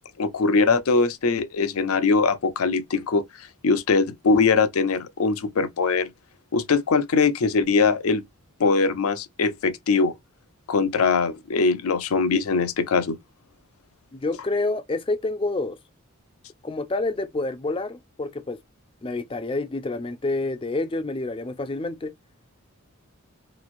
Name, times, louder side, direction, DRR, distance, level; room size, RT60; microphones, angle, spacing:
voice 1, 0.2-3.2 3.6-6.1 6.5-8.2 8.6-10.1 10.7-13.2, left 4 dB, 80° left, 0.6 m, -21 dB
voice 2, 14.1-15.8 16.6-18.6 19.0-22.1, left 2 dB, 25° left, 0.4 m, -28 dB
2.9 x 2.5 x 2.5 m
head